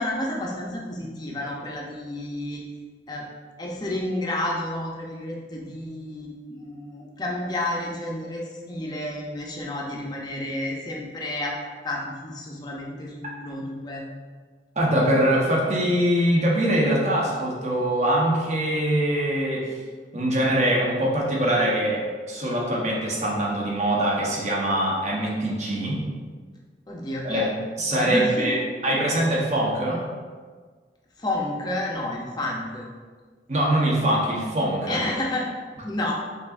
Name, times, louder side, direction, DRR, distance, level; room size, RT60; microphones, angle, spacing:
voice 1, 0.0-2.6 3.1-3.2 3.6-11.5 11.8-14.0 26.9-27.5 27.9-28.6 31.2-32.9 34.9-35.5 35.8-36.1, left 1 dB, 25° left, -2 dB, 0.6 m, -30 dB
voice 2, 14.8-19.8 20.1-26.0 27.2-27.4 27.8-28.6 28.8-30.0 33.5-35.0, right 1 dB, 40° right, -3 dB, 0.9 m, -23 dB
5.3 x 3.7 x 2.5 m, 1.5 s
head